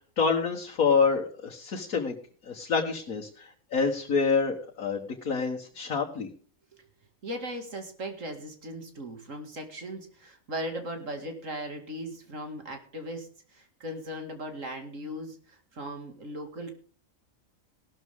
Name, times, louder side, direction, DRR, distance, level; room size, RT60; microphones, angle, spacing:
voice 1, 0.2-2.1 2.4-6.3, left 5 dB, 90° left, 1 dB, 1.9 m, -27 dB
voice 2, 7.2-16.7, equal, 65° right, 5 dB, 2.6 m, -38 dB
17.0 x 12.5 x 3.6 m, 0.41 s
omnidirectional pair, 1.4 m